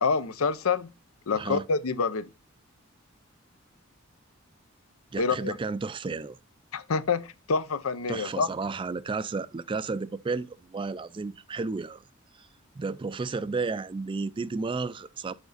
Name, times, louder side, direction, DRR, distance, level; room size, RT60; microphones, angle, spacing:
voice 1, 0.0-0.9 1.3-2.3 5.2-5.5 6.7-8.5, left 5 dB, 85° left, 0.6 m, -27 dB
voice 2, 1.3-1.6 5.1-6.4 8.1-12.0 12.8-15.3, right 4 dB, 25° right, 0.3 m, -32 dB
7.1 x 5.1 x 4.0 m
head